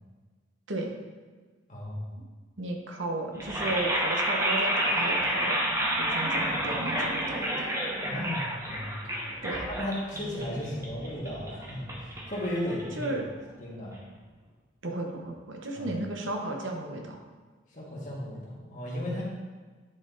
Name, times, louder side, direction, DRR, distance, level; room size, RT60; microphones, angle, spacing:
voice 1, 1.7-2.1 8.1-9.2 9.7-13.1 13.6-13.9 15.8-16.0 17.7-19.2, left 1 dB, 40° left, -5 dB, 1.9 m, -35 dB
voice 2, 2.6-5.6 6.0-7.7 9.4-9.6 13.0-13.2 14.8-17.2, right 2 dB, 80° right, 2 dB, 1.0 m, -34 dB
sound 1, 3.3-13.4, right 1 dB, 15° right, 0.9 m, -30 dB
9.7 x 4.3 x 4.0 m, 1.4 s
head